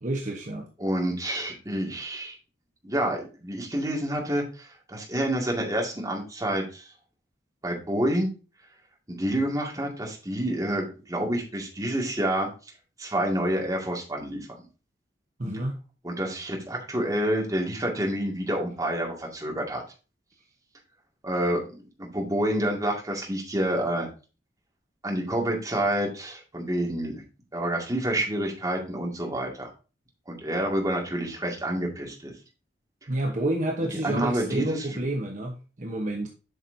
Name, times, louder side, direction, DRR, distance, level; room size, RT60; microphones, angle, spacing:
voice 1, 0.0-0.7 15.4-15.8 33.1-36.3, right 1 dB, 45° right, 2 dB, 1.0 m, -29 dB
voice 2, 0.8-2.4 2.8-6.8 7.6-8.3 9.1-12.5 13.0-14.4 16.0-19.8 21.2-24.1 25.0-27.2 27.5-29.7 30.3-32.3 33.8-34.8, right 1 dB, 20° right, -1 dB, 2.0 m, -28 dB
8.1 x 5.9 x 2.7 m, 0.32 s
head